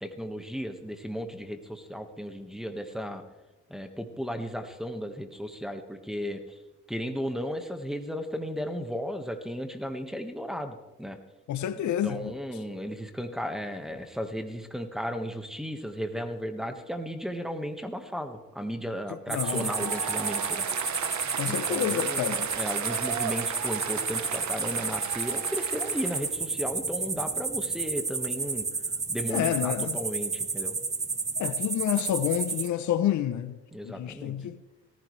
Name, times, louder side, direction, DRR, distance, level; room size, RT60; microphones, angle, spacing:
voice 1, 0.0-3.2 3.7-6.6 6.9-11.2 12.0-20.7 21.5-28.7 29.1-30.8 33.7-34.4, equal, ahead, 1.6 m, -35 dB
voice 2, 11.5-12.3 19.3-19.9 21.3-22.5 29.3-30.0 31.4-33.6 33.8-34.6, left 11 dB, 70° left, 0.8 m, -29 dB
sound 1, 19.3-32.7, right 4 dB, 20° right, 0.9 m, -31 dB
Applause, 19.3-26.3, right 9 dB, 70° right, 1.1 m, -35 dB
18.0 x 15.0 x 3.3 m
cardioid pair, 90°, 30 cm